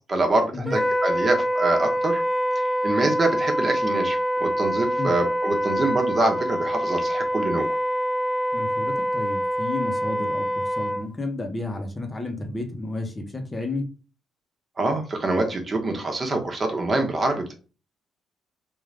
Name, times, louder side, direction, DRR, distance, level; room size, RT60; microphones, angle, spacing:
voice 1, 0.0-2.2 2.8-7.7 14.8-17.5, right 2 dB, 35° right, 3 dB, 1.1 m, -25 dB
Wind instrument woodwind instrument, 0.7-11.1, equal, 15° right, 0.7 m, -25 dB
voice 2, 8.5-13.9, left 2 dB, 25° left, 4 dB, 1.0 m, -31 dB
3.7 x 2.5 x 3.3 m, 0.34 s
cardioid pair, 90°, 0 cm